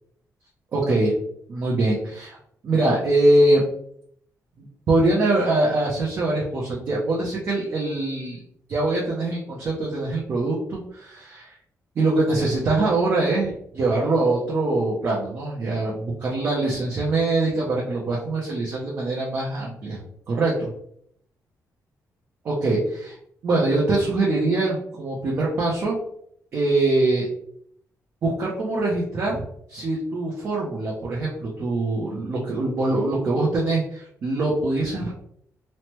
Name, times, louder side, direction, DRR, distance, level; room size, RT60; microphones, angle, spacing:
voice 1, 0.7-1.1 1.5-2.4 2.6-3.6 4.9-8.4 8.7-11.5 12.0-20.0 20.3-20.7 22.4-23.2 23.4-26.0 26.5-27.3 28.2-29.4 29.7-35.1, right 2 dB, 40° right, -4 dB, 0.6 m, -23 dB
3.1 x 2.1 x 2.9 m, 0.69 s
wide cardioid pair, 175°, 6 cm